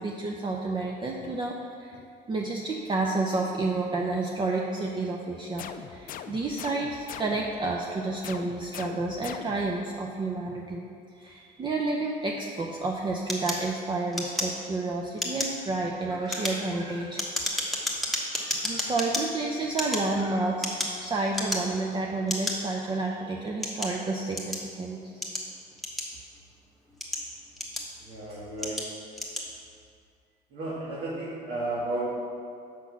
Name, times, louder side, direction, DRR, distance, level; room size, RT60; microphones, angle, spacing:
voice 1, 0.0-2.0 2.3-10.8 11.2-17.2 18.3-20.7 21.0-25.0, right 3 dB, 30° right, 0 dB, 0.6 m, -30 dB
sound 1, 5.6-7.6 8.2-9.8, left 9 dB, 55° left, 0.4 m, -42 dB
sound 2, 13.3-14.8 15.1-15.6 16.1-19.2 19.7-21.0 21.3-21.8 22.3-22.6 23.2-24.7 25.2-26.4 26.9-28.1 28.6-28.9 29.1-29.5, left 1 dB, ahead, 1.3 m, -31 dB
voice 2, 28.0-28.9 30.5-32.1, right 2 dB, 85° right, -8 dB, 1.8 m, -33 dB
6.3 x 5.9 x 5.9 m, 2.4 s
cardioid pair, 110°, 17 cm